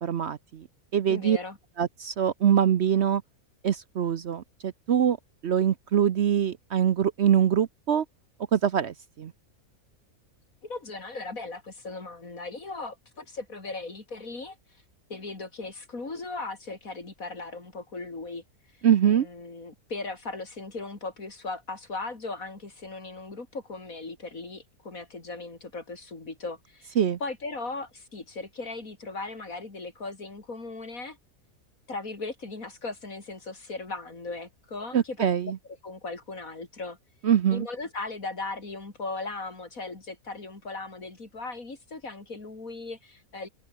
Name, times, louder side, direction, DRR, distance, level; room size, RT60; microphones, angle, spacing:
voice 1, 0.0-0.7 0.9-1.4 1.8-3.2 3.6-5.2 5.4-8.0 8.5-9.3 18.8-19.3 27.0-27.2 34.9-35.6 37.2-37.7, right 9 dB, 55° right, 0.9 m, -23 dB
voice 2, 1.1-1.6 10.6-14.6 15.1-18.4 19.0-31.2 31.9-35.5 35.8-37.0 37.5-43.5, left 3 dB, 65° left, 4.3 m, -38 dB
omnidirectional pair, 1.5 m